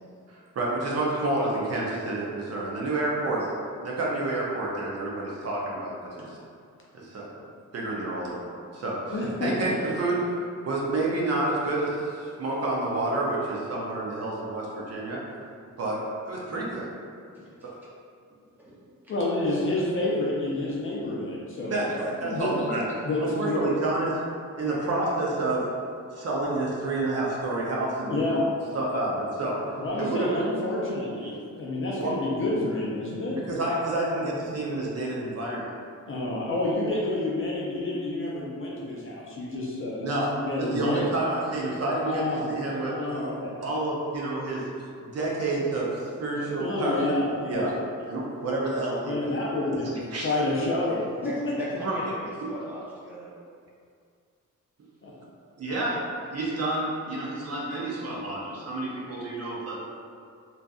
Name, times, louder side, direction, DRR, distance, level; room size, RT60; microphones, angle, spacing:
voice 1, 0.3-3.4 3.8-6.2 7.0-7.3 7.7-15.2 15.8-16.9 17.6-17.7 21.6-23.1 23.3-24.2 24.5-25.7 26.1-28.4 28.7-29.6 30.0-30.4 31.2-31.3 32.0-32.1 33.5-35.7 40.0-43.0 43.6-44.6 45.0-47.0 47.5-47.7 48.1-49.4 49.8-50.3 51.8-52.0 55.6-59.8, right 2 dB, 50° right, -4 dB, 0.5 m, -29 dB
voice 2, 9.1-9.7 19.1-21.9 22.2-22.7 23.0-23.6 28.1-28.4 29.8-33.4 36.1-41.3 42.0-42.5 42.8-43.6 46.6-47.7 49.0-51.5 55.0-55.1, left 2 dB, 40° left, -5 dB, 0.4 m, -29 dB
voice 3, 17.3-17.7 18.3-18.8 50.9-53.3, equal, 5° right, -9 dB, 0.6 m, -39 dB
2.6 x 2.3 x 2.3 m, 2.3 s
wide cardioid pair, 150°, 32 cm